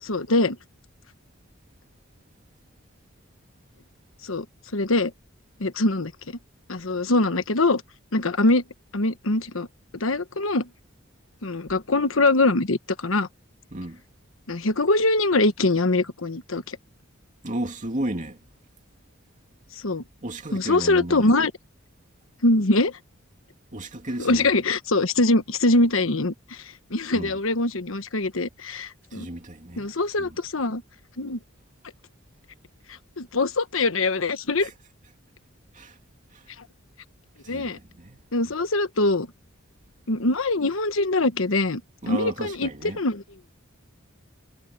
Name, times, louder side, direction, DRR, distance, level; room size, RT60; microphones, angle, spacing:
voice 1, 0.0-0.6 4.2-4.4 4.7-5.1 5.6-6.4 6.7-7.8 8.1-8.6 8.9-9.7 9.9-10.7 11.4-13.3 14.5-16.8 19.8-20.0 20.5-21.5 22.4-23.0 24.2-29.3 29.8-30.8 31.2-31.4 32.9-34.7 37.5-37.8 38.3-39.3 40.1-41.8 42.1-43.2, left 2 dB, 70° left, 1.3 m, -23 dB
voice 2, 17.4-18.4 20.2-21.3 23.7-24.5 27.1-27.4 29.1-29.9 30.2-30.4 34.6-34.7 35.7-36.0 36.3-36.5 37.4-38.5 42.0-43.0, right 1 dB, 40° right, 2.6 m, -34 dB
head